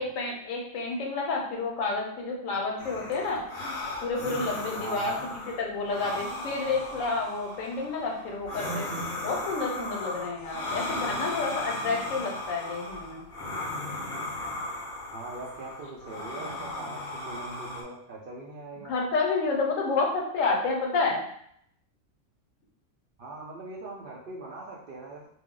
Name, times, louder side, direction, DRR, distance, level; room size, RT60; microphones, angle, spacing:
voice 1, 0.0-3.4 4.0-8.9 9.2-13.2 18.9-21.2, left 3 dB, 85° left, 0 dB, 1.1 m, -30 dB
sound 1, 2.8-17.8, left 2 dB, 60° left, 0.9 m, -36 dB
voice 2, 4.8-5.3 10.7-10.8 15.1-18.9 23.2-25.3, right 2 dB, 60° right, -4 dB, 0.6 m, -41 dB
2.5 x 2.0 x 3.6 m, 0.69 s
omnidirectional pair, 1.3 m